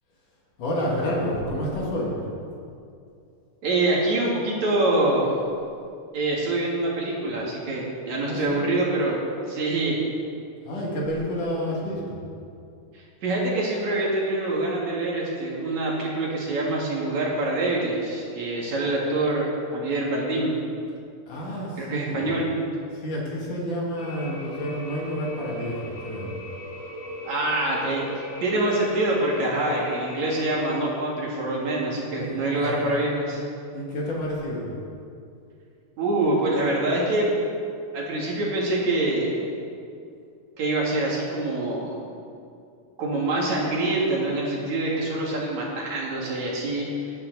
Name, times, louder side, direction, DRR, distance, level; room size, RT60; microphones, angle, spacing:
voice 1, 0.6-2.2 8.2-8.6 10.6-12.2 21.3-22.3 22.9-26.3 32.1-33.0 33.7-34.7, equal, 60° left, -4 dB, 3.7 m, -29 dB
voice 2, 3.6-5.3 6.1-9.2 9.5-10.0 12.9-20.6 21.8-22.5 27.2-33.4 36.0-37.4 37.9-39.4 40.6-42.0 43.0-47.1, right 2 dB, 55° right, -4 dB, 3.2 m, -25 dB
sound 1, 24.0-30.8, left 1 dB, 30° left, 3.3 m, -37 dB
18.5 x 10.5 x 4.1 m, 2.5 s
omnidirectional pair, 4.1 m